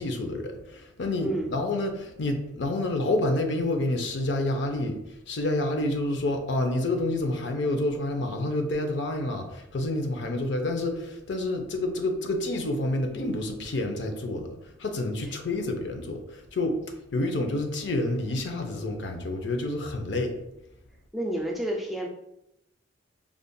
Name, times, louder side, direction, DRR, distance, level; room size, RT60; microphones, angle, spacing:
voice 1, 0.0-20.4, left 2 dB, 60° left, 5 dB, 0.5 m, -28 dB
voice 2, 1.2-1.5 21.1-22.1, right 1 dB, ahead, -1 dB, 0.3 m, -29 dB
5.1 x 2.4 x 2.2 m, 0.86 s
head